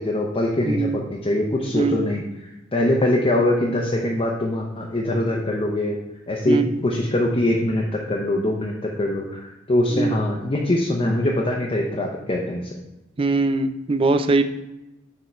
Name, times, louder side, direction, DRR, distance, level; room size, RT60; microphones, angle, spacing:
voice 1, 0.0-2.2 2.7-6.0 6.3-12.7, left 1 dB, 30° left, -1 dB, 0.6 m, -23 dB
voice 2, 0.7-1.0 1.7-2.1 6.5-6.8 9.9-10.2 13.2-14.4, right 3 dB, 30° right, 9 dB, 0.4 m, -21 dB
6.5 x 3.5 x 4.3 m, 0.95 s
head